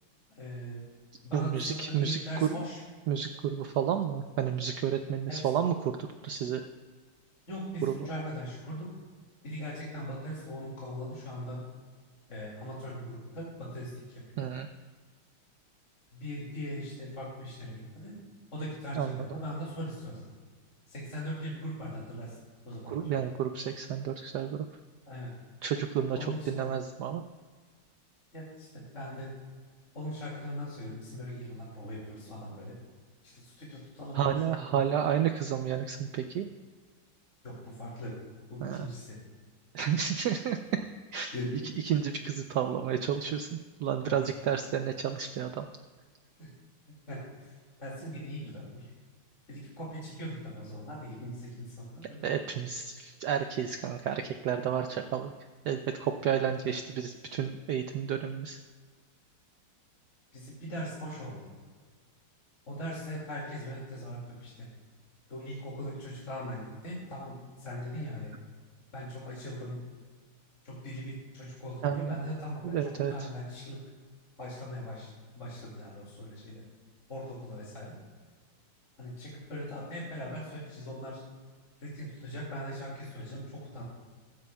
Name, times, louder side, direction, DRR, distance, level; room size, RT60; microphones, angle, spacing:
voice 1, 0.3-0.8 1.2-2.8 5.3-5.4 7.5-8.9 9.4-11.6 12.3-14.5 16.1-18.1 18.5-20.2 20.9-22.4 22.6-23.1 25.1-25.3 26.2-26.5 28.3-29.5 29.9-32.7 33.2-34.8 37.4-38.1 38.5-39.2 41.3-41.5 44.0-44.2 46.4-46.5 47.1-47.5 47.8-48.9 49.5-52.2 56.6-56.7 60.3-61.4 62.7-64.7 65.3-68.3 68.9-69.8 70.6-73.8 74.4-75.1 75.3-76.6 77.1-77.9 79.0-81.2 81.8-83.8, equal, 35° left, -5 dB, 2.5 m, -40 dB
voice 2, 1.3-2.5 3.1-6.7 7.8-8.0 14.4-14.7 18.9-19.2 22.9-24.7 25.6-27.2 34.1-36.5 38.6-38.9 39.7-40.6 41.1-41.3 41.8-45.7 52.2-55.3 55.6-58.6 71.8-72.2 72.6-73.3, right 8 dB, 80° right, 7 dB, 0.9 m, -31 dB
15.5 x 13.0 x 2.3 m, 1.6 s
omnidirectional pair, 2.3 m